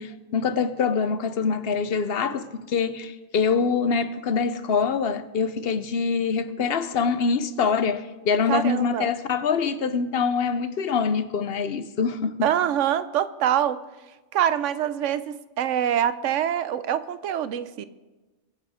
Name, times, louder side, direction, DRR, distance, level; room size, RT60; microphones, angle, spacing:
voice 1, 0.0-12.4, left 5 dB, 60° left, 0.8 m, -24 dB
voice 2, 8.5-9.1 12.4-13.8 14.3-17.9, right 10 dB, 90° right, 1.0 m, -25 dB
22.0 x 7.5 x 4.9 m
omnidirectional pair, 1.2 m